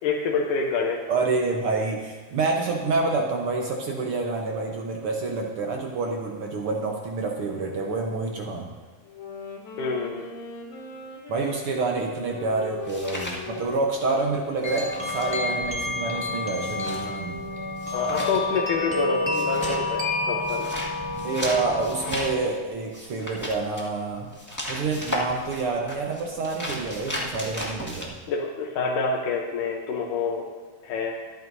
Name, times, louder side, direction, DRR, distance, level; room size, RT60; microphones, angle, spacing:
voice 1, 0.0-1.0 9.8-10.3 17.9-20.7 28.3-30.5 30.8-31.2, left 4 dB, 85° left, -1 dB, 2.5 m, -27 dB
voice 2, 1.1-8.7 11.3-17.4 21.1-24.3 24.7-28.1, right 3 dB, 60° right, 1 dB, 1.5 m, -27 dB
Wind instrument woodwind instrument, 9.0-17.7, left 5 dB, 60° left, 3.1 m, -42 dB
sound 1, 12.0-14.1 14.4-28.1, left 1 dB, 10° left, 1.1 m, -36 dB
sound 2, 14.6-22.4, left 2 dB, 10° right, 0.8 m, -29 dB
23.0 x 9.4 x 2.7 m, 1.4 s
omnidirectional pair, 3.6 m